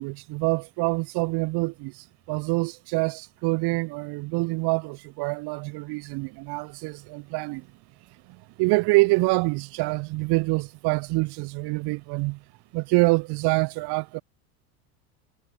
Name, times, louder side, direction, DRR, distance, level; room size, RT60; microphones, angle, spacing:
voice 1, 0.0-7.7 8.6-12.4 12.7-14.2, right 25 dB, 55° right, 1.4 m, -26 dB
hypercardioid pair, 95°, 46 cm